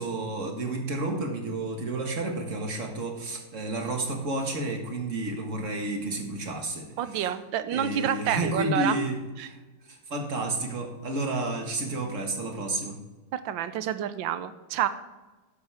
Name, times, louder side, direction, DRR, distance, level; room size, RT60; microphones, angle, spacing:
voice 1, 0.0-6.9 7.1-7.2 7.7-9.2 9.4-9.6 9.9-13.0, right 2 dB, 45° right, 2 dB, 1.9 m, -31 dB
voice 2, 7.0-9.0 9.4-9.5 13.3-14.9, right 10 dB, 90° right, 12 dB, 1.4 m, -28 dB
12.5 x 11.0 x 3.5 m, 1.2 s
omnidirectional pair, 2.0 m